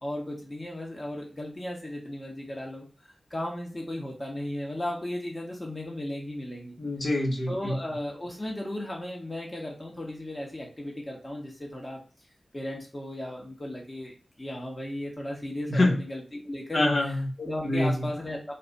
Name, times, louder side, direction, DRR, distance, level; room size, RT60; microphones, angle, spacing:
voice 1, 0.0-6.8 7.5-12.0 12.5-16.9 17.4-18.5, left 1 dB, 35° left, -1 dB, 1.4 m, -36 dB
voice 2, 6.8-7.8 15.7-16.0 16.7-17.3 17.6-18.1, left 1 dB, 65° left, -1 dB, 1.5 m, -25 dB
5.2 x 2.4 x 4.1 m, 0.37 s
cardioid pair, 40°, 0 cm